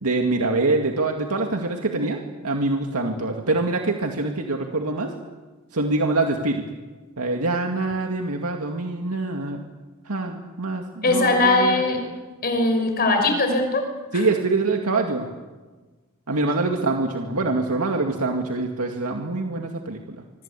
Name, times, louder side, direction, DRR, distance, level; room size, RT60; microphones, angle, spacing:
voice 1, 0.0-5.1 5.7-6.6 7.2-9.6 10.1-11.8 14.1-15.3 16.3-20.0, right 3 dB, 90° right, 2 dB, 2.3 m, -24 dB
voice 2, 11.0-12.0 12.4-13.9 14.1-14.2, left 2 dB, 45° left, 5 dB, 5.9 m, -20 dB
25.5 x 24.0 x 8.5 m, 1.3 s
head